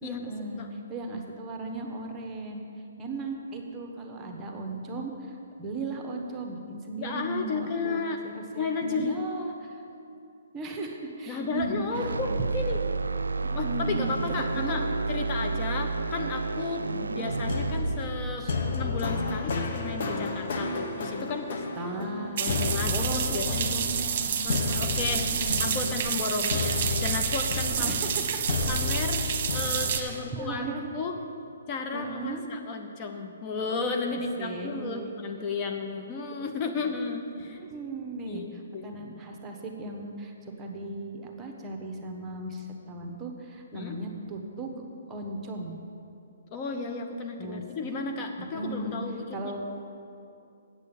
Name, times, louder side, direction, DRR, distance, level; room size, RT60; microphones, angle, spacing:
voice 1, 0.0-2.6 3.0-9.8 10.5-12.3 13.4-14.1 14.5-14.9 15.5-15.9 16.2-16.3 16.8-17.2 18.4-18.6 21.7-24.5 25.0-25.9 27.8-28.4 30.0-30.9 31.9-32.4 34.4-35.1 35.8-35.9 36.4-36.5 36.8-36.9 37.4-40.3 40.6-45.8 47.4-47.6 48.4-49.0 49.3-49.6, right 2 dB, 15° right, 2 dB, 1.2 m, -37 dB
voice 2, 7.0-8.2 8.6-9.2 11.3-12.8 13.5-16.8 17.2-18.5 18.7-21.6 22.4-23.8 24.4-25.3 25.6-27.9 28.7-29.2 29.5-30.7 30.9-31.1 31.7-37.6 38.3-38.5 38.7-38.9 43.7-44.0 46.5-49.7, left 4 dB, 30° left, 3 dB, 0.8 m, -33 dB
sound 1, 11.9-20.1, right 3 dB, 80° right, 0.3 m, -31 dB
sound 2, 17.3-30.2, left 4 dB, 55° left, 1.2 m, -32 dB
sound 3, 22.4-30.0, right 7 dB, 45° right, 1.1 m, -29 dB
8.2 x 8.1 x 7.1 m, 2.6 s
figure-of-eight pair, 130°, 0 cm